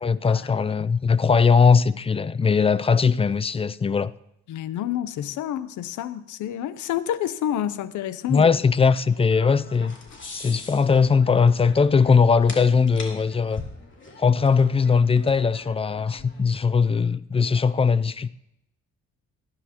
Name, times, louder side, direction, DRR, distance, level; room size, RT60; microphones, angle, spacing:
voice 1, 0.0-4.1 8.3-10.0 10.3-13.6 14.2-18.3, left 5 dB, 20° left, 0.4 m, -20 dB
voice 2, 4.5-8.6, left 11 dB, 80° left, 0.7 m, -29 dB
sound 1, 8.2-16.8, left 3 dB, 40° left, 2.8 m, -43 dB
18.5 x 9.8 x 2.9 m
cardioid pair, 90°, 30 cm